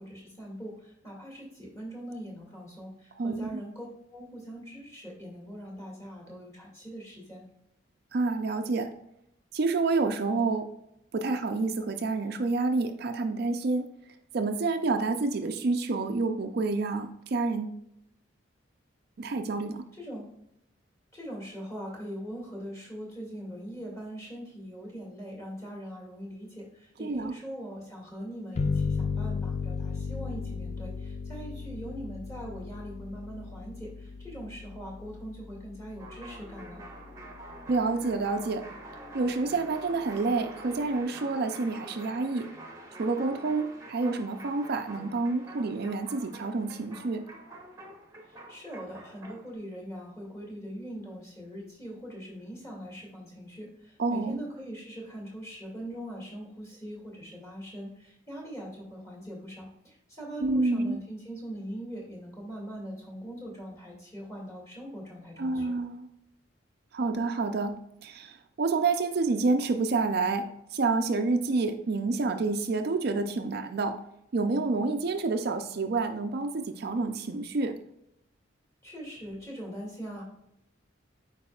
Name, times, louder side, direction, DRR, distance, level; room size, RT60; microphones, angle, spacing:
voice 1, 0.0-3.9 4.1-7.4 19.9-20.3 21.1-36.8 48.2-65.7 78.8-80.2, equal, 15° left, -3 dB, 2.1 m, -41 dB
voice 2, 3.2-3.6 8.1-8.9 9.5-10.7 11.1-13.9 14.3-17.8 19.2-19.8 27.0-27.3 37.7-38.6 39.1-42.5 42.9-47.2 54.0-54.4 60.4-61.0 65.4-66.1 66.9-67.7 68.0-70.5 70.7-74.0 74.3-77.8, right 3 dB, 50° right, 6 dB, 0.4 m, -28 dB
sound 1, 28.6-37.8, left 5 dB, 35° left, 0.3 m, -35 dB
sound 2, 36.0-49.5, right 2 dB, 15° right, 1.0 m, -46 dB
8.5 x 4.8 x 2.3 m, 0.79 s
head